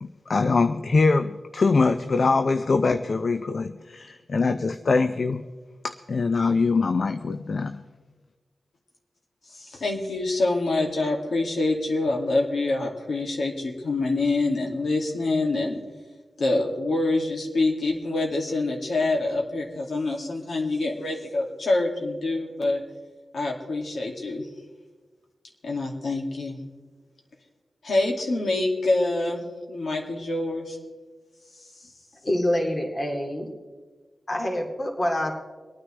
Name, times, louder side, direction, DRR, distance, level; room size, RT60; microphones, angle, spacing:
voice 1, 0.0-5.4 5.8-7.8, left 4 dB, 55° left, 9 dB, 0.5 m, -23 dB
voice 2, 9.5-15.8 16.4-22.8 23.3-24.5 25.6-26.6 27.8-29.4 29.7-30.8, left 2 dB, 70° left, 0 dB, 2.2 m, -26 dB
voice 3, 32.2-33.5 34.3-35.3, left 1 dB, 35° left, 1 dB, 2.3 m, -26 dB
25.5 x 9.4 x 3.3 m, 1.3 s
cardioid pair, 70°, 0 cm